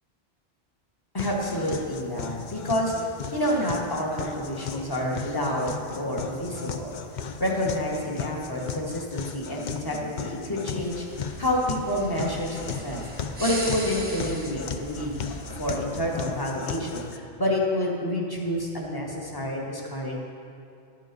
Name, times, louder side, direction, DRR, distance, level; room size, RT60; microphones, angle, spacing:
voice 1, 1.1-2.9 3.3-7.0 7.4-11.0 11.4-13.1 13.4-15.2 15.6-20.2, left 1 dB, 20° left, -2 dB, 1.4 m, -28 dB
sound 1, 1.2-17.2, left 6 dB, 55° left, 0.6 m, -36 dB
sound 2, 10.8-15.9, right 1 dB, 10° right, 1.2 m, -38 dB
12.0 x 7.4 x 5.3 m, 2.5 s
omnidirectional pair, 1.1 m